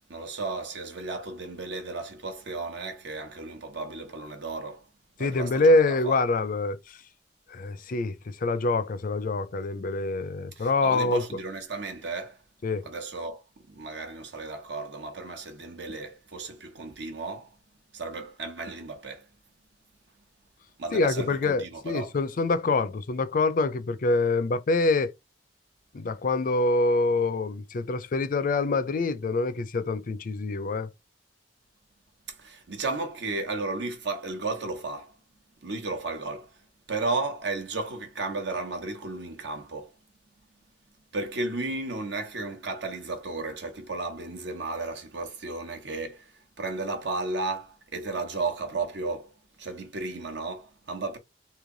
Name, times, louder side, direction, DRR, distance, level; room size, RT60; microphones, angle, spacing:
voice 1, 0.0-4.9 5.2-6.2 10.6-12.4 12.8-17.6 17.9-19.3 20.8-22.1 32.3-35.2 35.6-36.6 36.9-39.9 41.1-51.2, right 3 dB, 75° right, 1.1 m, -34 dB
voice 2, 5.2-7.0 7.5-11.2 12.6-12.8 20.9-25.1 25.9-30.9, left 3 dB, 50° left, 0.5 m, -25 dB
3.2 x 2.9 x 3.8 m
head